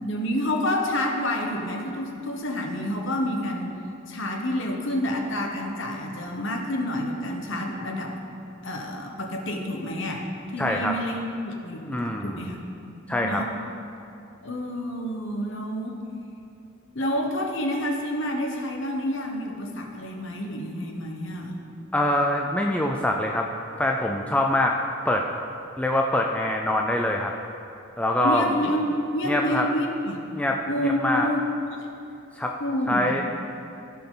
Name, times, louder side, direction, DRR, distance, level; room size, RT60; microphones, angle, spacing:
voice 1, 0.0-3.7 4.1-8.1 8.6-10.3 10.5-13.5 14.4-16.0 16.9-21.6 28.2-28.8 29.1-30.2 30.7-31.4 31.7-31.9 32.6-33.2, left 1 dB, 55° left, 2 dB, 1.1 m, -29 dB
voice 2, 10.6-10.9 11.8-12.5 13.1-13.4 21.9-23.5 23.8-24.7 25.1-25.2 25.8-27.3 28.0-28.4 29.2-29.6 30.3-31.3 32.4-32.5 32.9-33.2, left 1 dB, 5° left, 1 dB, 0.3 m, -24 dB
16.0 x 5.7 x 3.9 m, 2.7 s
head